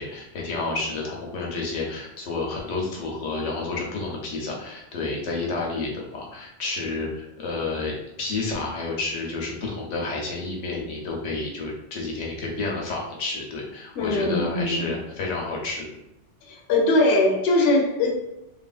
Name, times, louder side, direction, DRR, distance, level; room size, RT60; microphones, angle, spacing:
voice 1, 0.0-15.9, left 3 dB, 90° left, -2 dB, 1.0 m, -30 dB
voice 2, 14.0-14.8 16.5-18.1, left 2 dB, 65° left, 0 dB, 0.8 m, -21 dB
2.9 x 2.5 x 2.3 m, 0.87 s
omnidirectional pair, 1.2 m